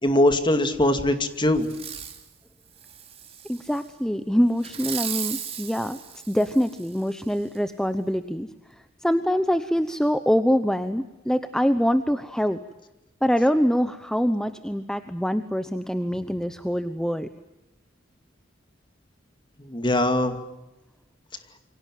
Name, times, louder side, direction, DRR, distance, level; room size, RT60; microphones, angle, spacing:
voice 1, 0.0-1.7 19.7-20.3, left 1 dB, 25° left, 8 dB, 2.4 m, -21 dB
Fireworks, 1.6-2.2 2.8-3.8 4.6-7.0 7.5-7.6, right 8 dB, 30° right, 3.0 m, -36 dB
voice 2, 3.5-6.0 6.3-8.5 9.0-12.6 13.2-17.3, equal, 5° left, 10 dB, 0.9 m, -24 dB
28.0 x 25.0 x 7.7 m, 0.99 s
head